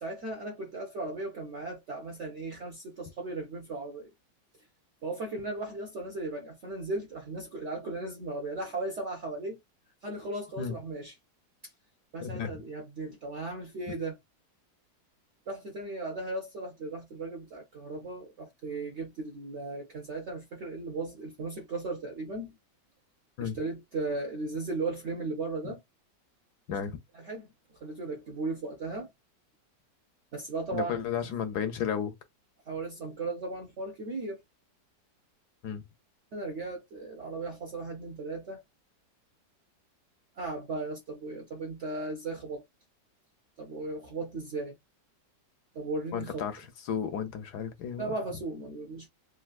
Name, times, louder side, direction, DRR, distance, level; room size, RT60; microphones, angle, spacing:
voice 1, 0.0-4.1 5.0-9.6 10.0-11.1 12.1-14.2 15.5-22.6 23.4-25.8 27.1-27.5 27.8-29.1 30.3-31.3 32.7-34.4 36.3-38.6 40.4-42.6 43.6-44.8 45.7-46.5 48.0-49.1, right 2 dB, 60° right, 0.7 m, -36 dB
voice 2, 12.2-12.5 23.4-23.6 25.6-25.7 26.7-27.0 30.7-32.1 35.6-35.8 46.1-48.1, left 8 dB, 75° left, 1.1 m, -33 dB
3.3 x 2.5 x 2.3 m
omnidirectional pair, 1.9 m